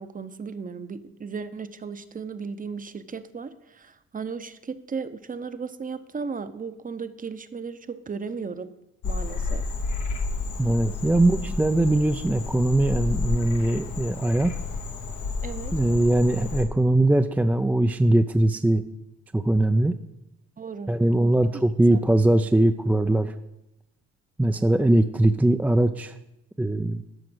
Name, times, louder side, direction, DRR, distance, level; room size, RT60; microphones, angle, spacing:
voice 1, 0.0-8.7 9.0-9.6 11.1-11.4 15.4-15.7 20.6-20.9 21.2-21.6 21.9-22.0, right 5 dB, 30° right, 12 dB, 0.7 m, -36 dB
Frog, 9.0-16.6, left 3 dB, 85° left, 1.4 m, -31 dB
voice 2, 10.6-14.5 15.7-18.8 19.3-19.9 20.9-23.3 24.4-26.1 26.6-27.0, right 1 dB, 5° right, 7 dB, 0.3 m, -21 dB
12.5 x 5.1 x 6.1 m, 0.91 s
cardioid pair, 90°, 30 cm